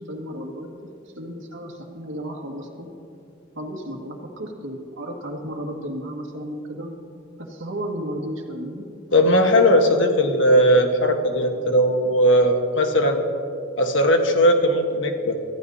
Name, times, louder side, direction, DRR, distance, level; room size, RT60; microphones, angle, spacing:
voice 1, 0.0-2.9 3.6-6.9 7.4-8.8, equal, 80° right, 1 dB, 1.9 m, -33 dB
voice 2, 9.1-13.2 13.8-15.4, equal, 75° left, 4 dB, 1.4 m, -18 dB
23.0 x 14.5 x 2.8 m, 2.7 s
head